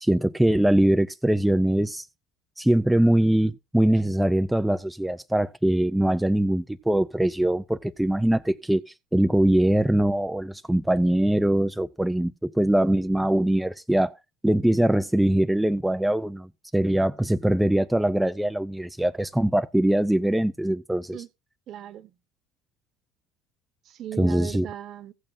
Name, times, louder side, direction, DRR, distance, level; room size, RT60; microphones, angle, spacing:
voice 1, 0.0-2.1 2.6-14.2 14.4-21.2 24.2-24.7, right 1 dB, 5° right, 0.4 m, -22 dB
voice 2, 21.7-22.1 23.8-25.1, right 11 dB, 45° right, 1.1 m, -38 dB
15.0 x 8.4 x 2.7 m
hypercardioid pair, 70°, 0 cm